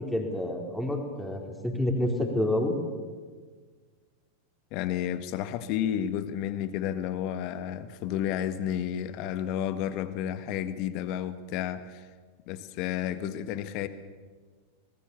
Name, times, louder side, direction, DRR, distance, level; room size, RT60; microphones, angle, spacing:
voice 1, 0.0-2.7, left 1 dB, 5° left, 1 dB, 4.2 m, -28 dB
voice 2, 4.7-12.1 12.5-13.9, left 10 dB, 45° left, 12 dB, 1.5 m, -31 dB
27.0 x 20.0 x 7.2 m, 1.5 s
figure-of-eight pair, 90°, 0 cm